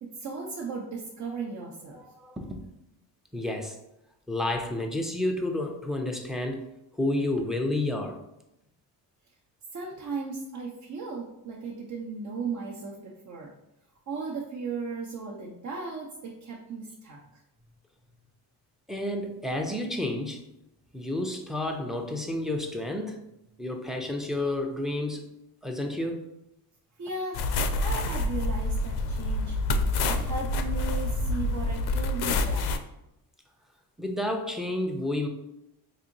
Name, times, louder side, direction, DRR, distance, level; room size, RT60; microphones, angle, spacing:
voice 1, 0.0-2.0 9.7-13.5 14.1-17.2 27.0-27.5 27.8-29.6 30.1-32.9, right 4 dB, 45° right, -2 dB, 0.6 m, -36 dB
voice 2, 1.9-2.6 3.3-3.8 4.3-6.6 7.0-8.2 18.9-20.4 20.9-23.2 23.6-25.2 25.6-26.3 34.0-35.3, left 1 dB, ahead, 3 dB, 0.4 m, -30 dB
sound 1, 27.3-32.8, left 2 dB, 65° left, 0.5 m, -27 dB
4.1 x 2.8 x 2.6 m, 0.84 s
cardioid pair, 95°, 42 cm